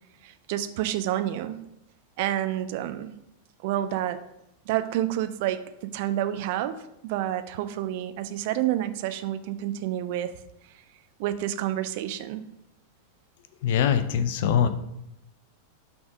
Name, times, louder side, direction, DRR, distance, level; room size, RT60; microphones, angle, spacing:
voice 1, 0.2-1.6 2.2-3.1 3.6-4.2 4.7-10.3 11.2-12.4, right 12 dB, 50° right, 11 dB, 0.4 m, -29 dB
voice 2, 13.6-14.7, left 8 dB, 50° left, 11 dB, 0.4 m, -22 dB
6.0 x 3.6 x 4.8 m, 0.83 s
figure-of-eight pair, 90°, 0 cm